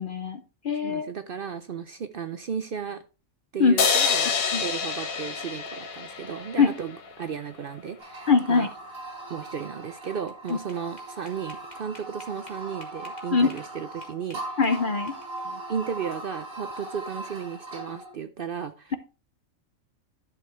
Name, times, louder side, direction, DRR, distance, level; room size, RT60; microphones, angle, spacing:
voice 1, 0.0-1.1 3.6-3.7 4.5-4.6 6.6-6.7 8.3-8.7 10.5-10.6 13.3-13.5 14.6-15.1, left 5 dB, 50° left, 10 dB, 0.7 m, -22 dB
voice 2, 0.8-3.0 3.5-8.7 9.3-14.6 15.4-18.9, right 7 dB, 55° right, 10 dB, 0.7 m, -35 dB
sound 1, 3.8-7.1, left 6 dB, 85° left, 1.5 m, -27 dB
sound 2, 8.0-18.1, right 2 dB, 85° right, 3.3 m, -39 dB
sound 3, 9.8-13.7 14.0-15.5, left 2 dB, 30° left, 1.9 m, -50 dB
11.0 x 6.7 x 3.1 m, 0.32 s
omnidirectional pair, 1.4 m